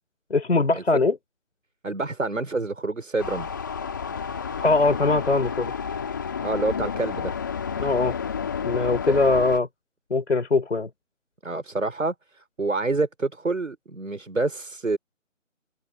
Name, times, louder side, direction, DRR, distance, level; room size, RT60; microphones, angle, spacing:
voice 1, 0.3-1.2 4.6-5.7 7.8-8.1 8.6-9.7 10.1-10.9, left 3 dB, 55° left, 4.3 m, -21 dB
voice 2, 1.8-3.5 6.4-7.4 9.1-9.2 11.4-15.0, right 3 dB, 75° right, 5.3 m, -27 dB
sound 1, 3.2-9.6, left 6 dB, 15° left, 2.9 m, -31 dB
figure-of-eight pair, 175°, 39 cm